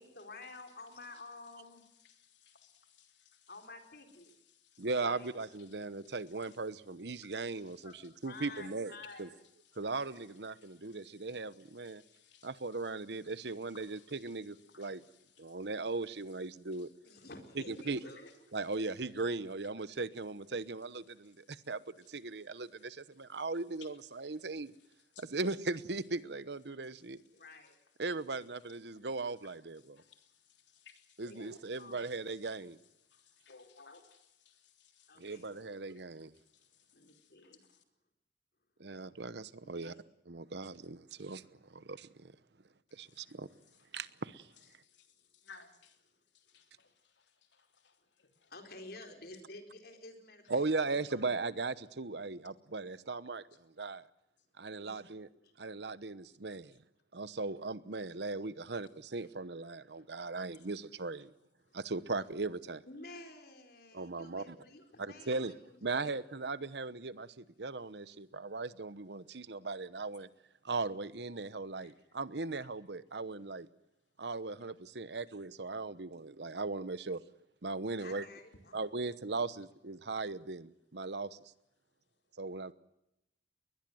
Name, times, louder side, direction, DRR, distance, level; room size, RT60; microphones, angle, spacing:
voice 1, 0.0-1.8 3.5-4.3 5.0-5.3 7.8-7.9 8.2-9.3 17.0-18.3 27.3-27.8 31.3-32.0 35.1-35.5 36.9-37.6 39.6-40.0 48.5-51.2 54.8-55.1 60.6-60.7 61.7-61.8 62.9-66.2 78.0-79.0, left 2 dB, 60° left, 5 dB, 4.3 m, -51 dB
voice 2, 2.0-3.4 4.7-4.8 10.6-11.1 11.8-12.5 13.9-14.2 14.7-14.9 25.1-25.2 30.0-30.3 30.7-31.2 33.1-35.1 37.1-37.3 43.1-43.3 45.0-45.1 45.4-45.9 46.5-46.9 47.2-47.3 47.5-47.9 48.2-48.5 66.6-66.7 71.8-71.9 73.4-73.5 74.5-74.6, left 5 dB, 85° left, 6 dB, 3.3 m, -60 dB
voice 3, 4.8-8.9 9.2-9.3 9.8-12.0 12.4-15.0 15.4-16.9 17.6-18.0 18.5-21.8 22.1-24.7 25.2-27.2 28.0-30.0 31.2-32.8 35.2-36.3 38.8-40.0 40.3-42.3 42.9-43.5 43.9-44.5 50.5-54.1 54.6-55.3 55.6-56.8 57.1-61.3 61.7-62.8 63.9-64.5 65.0-65.5 65.8-70.3 70.6-73.7 74.2-77.2 77.6-78.3 78.7-81.4 82.4-82.7, right 3 dB, 70° right, 16 dB, 1.0 m, -38 dB
21.5 x 20.5 x 7.8 m, 0.86 s
head